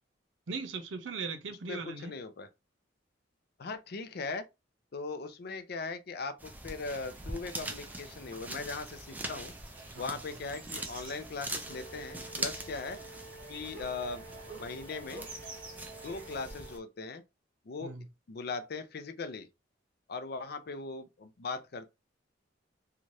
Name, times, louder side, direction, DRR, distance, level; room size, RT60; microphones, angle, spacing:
voice 1, 0.5-2.1 9.9-10.1 17.8-18.1, right 4 dB, 85° right, 0.7 m, -39 dB
voice 2, 1.5-2.5 3.6-4.4 4.9-9.5 10.0-13.0 13.5-14.3 14.5-15.3 16.0-17.2 17.7-17.9 18.3-19.5 20.1-21.9, left 4 dB, 55° left, 0.5 m, -39 dB
sound 1, 6.4-16.8, right 2 dB, 10° right, 0.4 m, -43 dB
sound 2, 6.9-16.4, right 3 dB, 50° right, 1.2 m, -52 dB
Wind instrument woodwind instrument, 11.6-16.8, right 2 dB, 25° left, 0.8 m, -51 dB
3.1 x 2.3 x 2.7 m
head